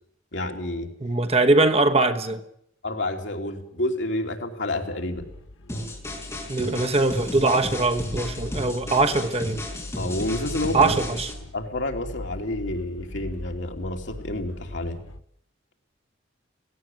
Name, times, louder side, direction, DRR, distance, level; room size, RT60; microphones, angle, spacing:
voice 1, 0.3-0.9 2.8-5.2 10.0-11.0 11.5-15.0, left 1 dB, 70° left, 3.0 m, -29 dB
voice 2, 1.0-2.4 6.5-9.6 10.7-11.3, right 2 dB, 30° right, 1.2 m, -21 dB
sound 1, 4.9-15.2, left 1 dB, 85° left, 1.0 m, -40 dB
sound 2, 5.7-11.3, left 1 dB, 15° left, 4.8 m, -34 dB
17.0 x 17.0 x 9.2 m
head